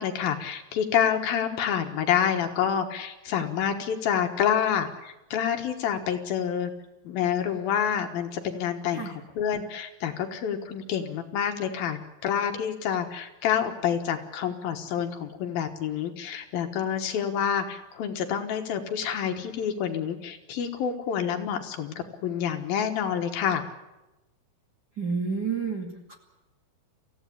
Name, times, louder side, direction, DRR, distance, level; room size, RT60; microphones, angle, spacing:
voice 1, 0.0-6.7 7.0-23.6, left 8 dB, 70° left, 5 dB, 3.1 m, -28 dB
voice 2, 25.0-26.1, right 5 dB, 30° right, 0 dB, 2.3 m, -30 dB
27.5 x 16.0 x 8.6 m, 0.98 s
omnidirectional pair, 4.6 m